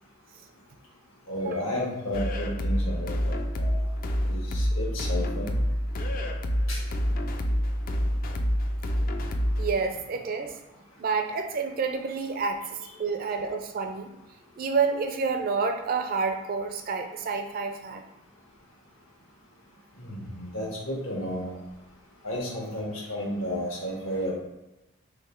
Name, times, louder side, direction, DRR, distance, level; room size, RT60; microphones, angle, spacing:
voice 1, 1.3-3.9 4.3-5.5 6.7-6.8 20.0-21.5 22.2-24.3, equal, 85° left, -3 dB, 1.3 m, -32 dB
sound 1, 2.1-9.7, equal, 45° left, 0.3 m, -27 dB
voice 2, 9.6-10.5 11.0-14.1 14.6-18.0, right 5 dB, 45° right, 5 dB, 0.4 m, -29 dB
3.1 x 3.0 x 3.5 m, 0.96 s
head